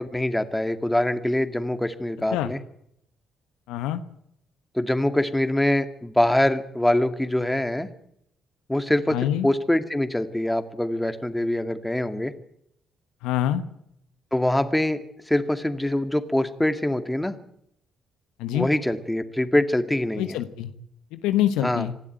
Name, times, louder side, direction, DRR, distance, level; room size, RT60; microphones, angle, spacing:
voice 1, 0.0-2.6 4.7-7.9 8.7-9.2 9.4-12.3 14.3-15.0 15.3-17.4 18.5-20.4 21.6-21.9, left 1 dB, 10° left, 9 dB, 2.2 m, -24 dB
voice 2, 3.7-4.0 9.1-9.5 13.2-13.6 18.4-18.7 20.2-20.7 21.1-22.0, left 12 dB, 75° left, 11 dB, 1.2 m, -25 dB
26.5 x 12.0 x 9.2 m, 0.74 s
hypercardioid pair, 45°, 0 cm